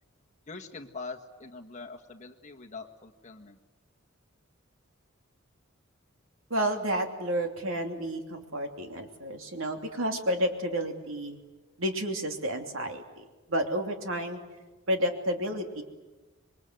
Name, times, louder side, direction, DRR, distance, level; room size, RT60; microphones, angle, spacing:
voice 1, 0.5-3.6, left 4 dB, 35° left, 3 dB, 1.8 m, -43 dB
voice 2, 6.5-11.4 11.8-14.4 14.9-15.8, right 1 dB, 75° right, 4 dB, 2.9 m, -31 dB
26.5 x 23.0 x 8.0 m, 1.2 s
head